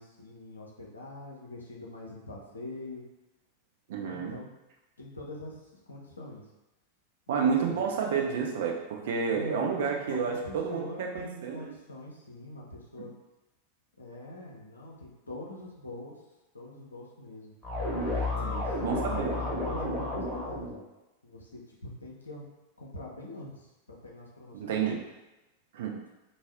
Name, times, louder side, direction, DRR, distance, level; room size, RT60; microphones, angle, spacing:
voice 1, 0.0-3.0 4.0-4.5 5.0-5.6 5.9-6.4 7.3-7.8 9.3-13.1 14.0-16.1 16.5-17.5 18.3-20.8 21.2-21.6 22.0-22.5 22.8-25.0, left 2 dB, 75° left, -2 dB, 0.6 m, -43 dB
voice 2, 3.9-4.4 7.3-11.8 18.4-19.3 24.5-25.0 25.7-26.0, right 6 dB, 55° right, 0 dB, 0.4 m, -30 dB
sound 1, 17.6-20.8, left 1 dB, 10° left, 1.0 m, -31 dB
2.5 x 2.0 x 3.4 m, 1.0 s
figure-of-eight pair, 90°, 0 cm